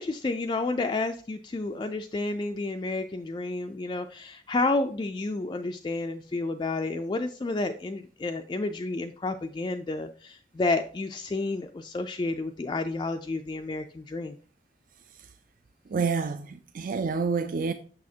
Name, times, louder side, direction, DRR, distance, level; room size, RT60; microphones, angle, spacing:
voice 1, 0.0-14.4, left 3 dB, 25° left, 0.3 m, -30 dB
voice 2, 15.9-17.7, right 5 dB, 50° right, 0.4 m, -28 dB
6.5 x 6.3 x 2.8 m
head